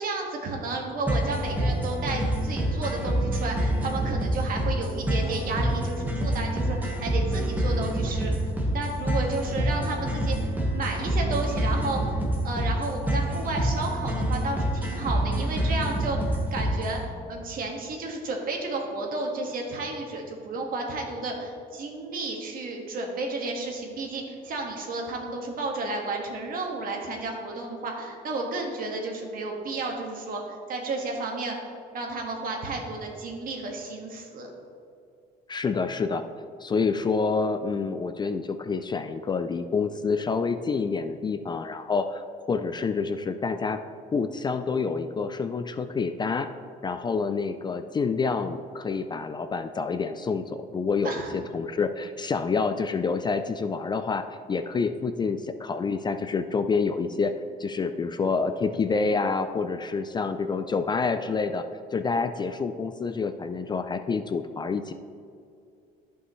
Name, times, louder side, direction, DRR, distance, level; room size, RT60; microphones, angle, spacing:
voice 1, 0.0-34.5 51.0-51.4, right 2 dB, 55° right, 1 dB, 1.8 m, -32 dB
sound 1, 1.1-17.0, right 1 dB, 10° right, 1.5 m, -27 dB
voice 2, 35.5-36.2 36.6-43.8 44.1-46.5 46.8-57.3 57.6-61.7 61.9-64.9, left 4 dB, 25° left, 9 dB, 0.4 m, -28 dB
14.0 x 5.6 x 3.2 m, 2.4 s
cardioid pair, 110°, 17 cm